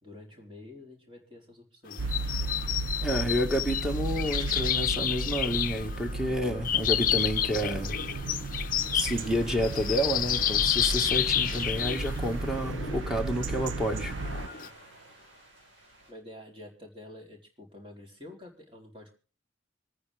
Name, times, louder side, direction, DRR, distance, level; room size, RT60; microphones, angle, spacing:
voice 1, 0.0-2.0 16.1-19.1, left 1 dB, 30° right, 4.1 m, -48 dB
sound 1, 1.9-14.7, left 10 dB, 45° left, 0.7 m, -31 dB
sound 2, 2.0-14.5, right 2 dB, 90° right, 0.7 m, -34 dB
voice 2, 3.0-8.0 8.9-14.2, equal, 5° right, 1.8 m, -30 dB
sound 3, 8.0-16.1, right 1 dB, 75° right, 6.6 m, -50 dB
26.5 x 9.5 x 3.5 m
head